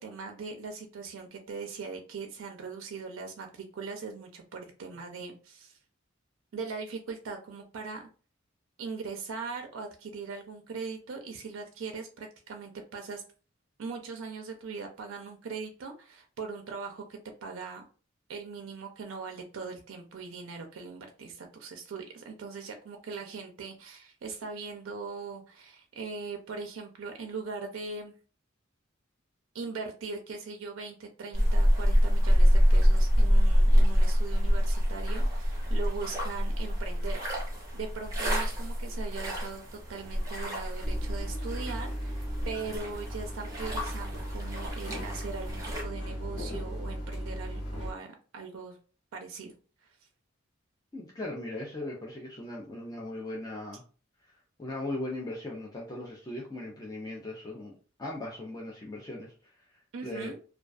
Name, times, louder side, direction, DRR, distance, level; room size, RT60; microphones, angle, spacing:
voice 1, 0.0-5.8 6.5-8.1 8.8-13.2 13.8-17.0 17.4-17.8 18.3-28.2 29.5-37.2 37.7-48.8 49.1-49.5 59.9-60.4, right 4 dB, 75° right, 3 dB, 0.4 m, -40 dB
sound 1, 31.3-45.8, equal, 15° right, 0.8 m, -26 dB
sound 2, 40.8-47.9, equal, 55° left, 1.1 m, -37 dB
voice 2, 50.9-53.8 54.6-57.7 58.0-59.3 60.0-60.3, left 1 dB, 20° left, -3 dB, 0.4 m, -38 dB
2.3 x 2.2 x 2.4 m, 0.37 s
head